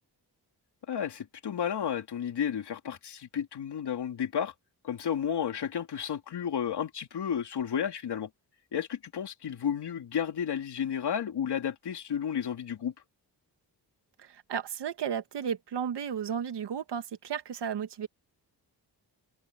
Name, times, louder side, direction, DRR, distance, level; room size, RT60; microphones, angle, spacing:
voice 1, 0.9-4.5 4.8-8.3 8.7-12.9, left 8 dB, 80° left, 3.4 m, -32 dB
voice 2, 14.2-18.1, right 8 dB, 90° right, 1.8 m, -34 dB
open air
wide cardioid pair, 175°, 40 cm